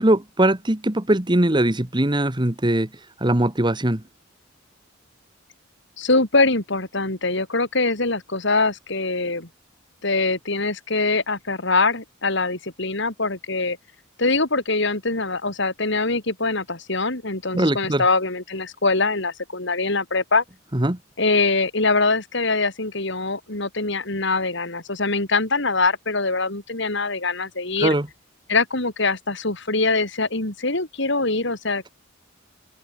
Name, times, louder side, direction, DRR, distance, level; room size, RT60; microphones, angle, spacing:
voice 1, 0.0-2.9 3.2-4.0 17.5-18.0 20.7-21.0 27.8-28.1, right 1 dB, 20° right, 1.4 m, -20 dB
voice 2, 6.0-9.5 10.0-13.8 14.2-20.4 21.2-27.9 28.5-31.9, left 3 dB, 60° left, 3.6 m, -23 dB
open air
head